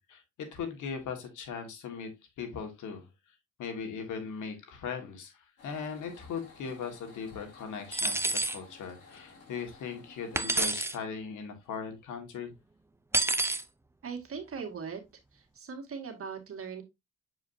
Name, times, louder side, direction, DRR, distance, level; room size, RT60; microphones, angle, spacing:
voice 1, 0.5-2.1 2.4-3.0 3.6-5.3 5.6-12.5, left 6 dB, 80° left, 1.9 m, -39 dB
sound 1, 5.6-10.6, left 3 dB, 50° left, 3.2 m, -52 dB
sound 2, 7.9-8.6 10.3-11.0 13.1-13.6, right 2 dB, 10° right, 0.5 m, -28 dB
voice 2, 14.0-15.0 15.3-16.8, right 6 dB, 45° right, 2.0 m, -39 dB
7.4 x 4.8 x 2.7 m
cardioid pair, 90°, 30 cm